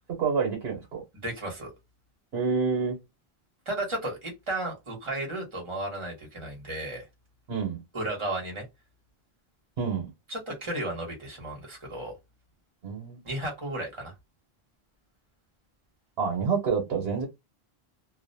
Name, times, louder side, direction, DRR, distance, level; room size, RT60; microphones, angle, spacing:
voice 1, 0.2-1.0 2.3-3.0 7.5-7.8 9.8-10.1 12.8-13.2 16.2-17.3, right 5 dB, 80° right, 1.0 m, -27 dB
voice 2, 1.2-1.7 3.7-7.0 7.9-8.6 10.3-12.2 13.2-14.1, right 1 dB, 30° right, 1.0 m, -34 dB
2.5 x 2.1 x 2.6 m
omnidirectional pair, 1.0 m